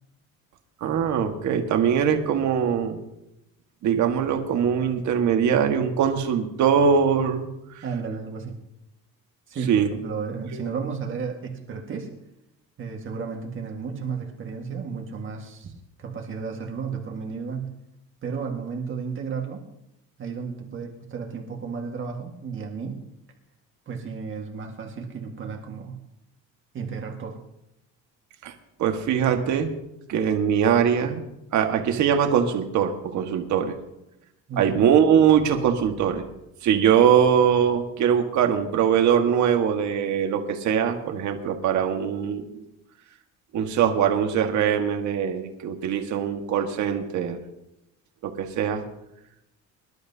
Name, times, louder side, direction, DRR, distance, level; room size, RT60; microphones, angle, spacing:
voice 1, 0.8-3.0 3.8-7.5 7.7-7.8 9.7-9.9 10.5-10.6 28.4-28.5 28.8-29.7 30.1-31.2 31.5-33.7 34.6-36.2 36.6-42.6 43.5-47.4 48.2-48.8, right 8 dB, 65° right, 4 dB, 1.7 m, -22 dB
voice 2, 7.8-8.6 9.5-12.2 12.8-15.7 16.0-17.8 18.2-19.7 20.2-23.1 23.9-26.0 26.7-27.5 34.5-34.8, right 5 dB, 40° right, 1 dB, 1.8 m, -33 dB
24.5 x 11.5 x 2.8 m, 0.86 s
cardioid pair, 145°, 31 cm